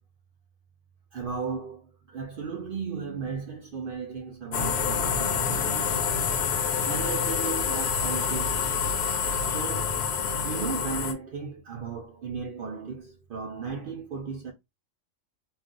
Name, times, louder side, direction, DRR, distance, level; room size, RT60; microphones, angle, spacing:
voice 1, 1.1-6.0 6.8-10.0 10.4-14.5, right 5 dB, 65° right, 0.5 m, -36 dB
sound 1, 4.5-11.1, left 6 dB, 65° left, 0.7 m, -27 dB
2.4 x 2.3 x 3.6 m
omnidirectional pair, 1.4 m